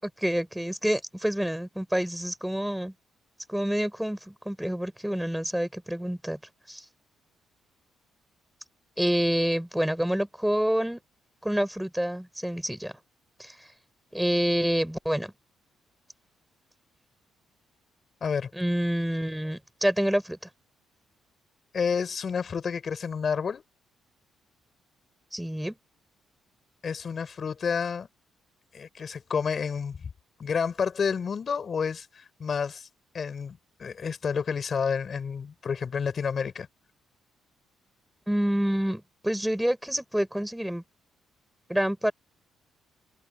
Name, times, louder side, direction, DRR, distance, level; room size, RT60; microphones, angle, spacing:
voice 1, 0.0-2.9 3.5-6.4 6.7-6.8 9.0-11.0 11.4-12.9 13.4-13.5 14.1-15.3 18.5-20.4 25.3-25.7 38.3-40.8 41.7-42.1, equal, 5° right, 5.0 m, -27 dB
voice 2, 21.7-23.6 26.8-28.1 28.7-30.1 30.4-32.9 33.1-36.7, left 6 dB, 45° left, 5.1 m, -30 dB
open air
cardioid pair, 90°, 0 cm